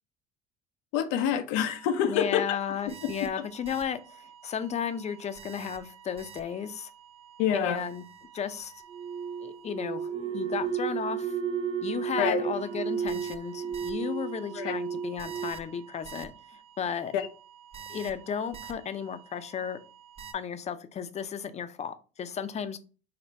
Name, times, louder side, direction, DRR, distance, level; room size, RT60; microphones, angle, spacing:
voice 1, 0.9-2.4 3.2-3.3 7.4-7.8 12.2-12.4 14.6-14.8 17.1-17.3, left 9 dB, 80° left, 0.6 m, -26 dB
sound 1, 1.6-2.1 2.4-3.9 4.1-4.5 4.7-6.9 7.3-16.3 17.7-18.7 19.0-19.1 20.2-20.3, right 9 dB, 30° right, 0.7 m, -39 dB
voice 2, 2.0-6.9 7.5-8.0 8.3-8.7 9.4-11.4 11.8-17.1 17.9-19.8 20.3-22.8, left 7 dB, 35° left, 0.6 m, -34 dB
sound 2, 8.9-15.5, right 6 dB, 70° right, 0.5 m, -35 dB
4.1 x 2.1 x 4.4 m
supercardioid pair, 85°, 19 cm